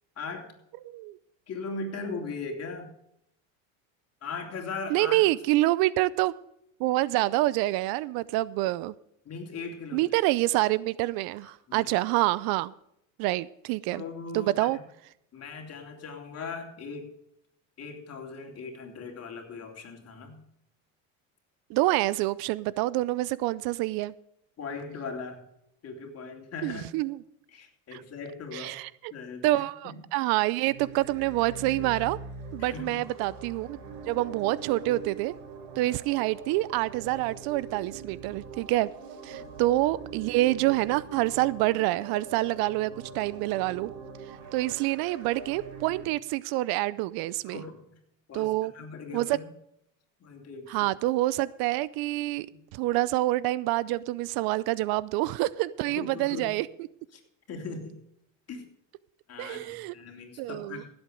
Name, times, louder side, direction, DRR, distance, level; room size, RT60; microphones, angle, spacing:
voice 1, 0.2-0.5 1.5-2.9 4.2-5.2 9.2-10.1 11.4-11.9 13.9-14.7 15.3-17.1 17.8-20.4 24.6-25.4 25.8-26.9 27.5-28.8 29.1-30.0 32.6-33.1 35.7-36.0 39.3-39.5 47.4-47.9 48.3-49.5 50.2-50.8 55.8-56.5 57.1-57.2 57.5-58.0 58.5-58.6 59.3-60.9, left 4 dB, 35° left, 3 dB, 3.3 m, -39 dB
voice 2, 0.9-1.2 4.9-6.4 6.8-8.9 9.9-12.7 13.2-14.0 14.3-14.8 21.7-24.1 26.6-27.2 27.9-28.0 28.5-29.1 29.4-32.2 32.5-33.8 34.1-35.3 35.8-38.9 39.2-43.9 44.5-47.6 48.3-48.7 49.1-49.3 50.7-52.5 52.7-56.7 59.4-59.9 60.4-60.8, right 18 dB, 65° right, 20 dB, 0.6 m, -27 dB
sound 1, 30.6-46.1, right 4 dB, 80° right, 4.0 m, -43 dB
16.0 x 8.0 x 5.1 m, 0.76 s
supercardioid pair, 115°, 40 cm